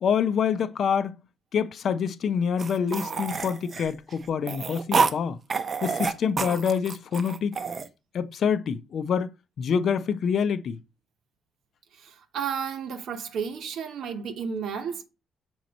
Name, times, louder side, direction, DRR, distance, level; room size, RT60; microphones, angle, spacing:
voice 1, 0.0-1.2 1.5-5.4 5.8-7.6 8.1-10.8, left 7 dB, 60° left, 0.6 m, -26 dB
sound 1, 2.6-5.2 5.5-7.9, right 4 dB, 40° right, 0.6 m, -28 dB
voice 2, 12.0-15.0, right 6 dB, 75° right, 1.0 m, -32 dB
6.2 x 3.0 x 5.2 m
cardioid pair, 90°, 0 cm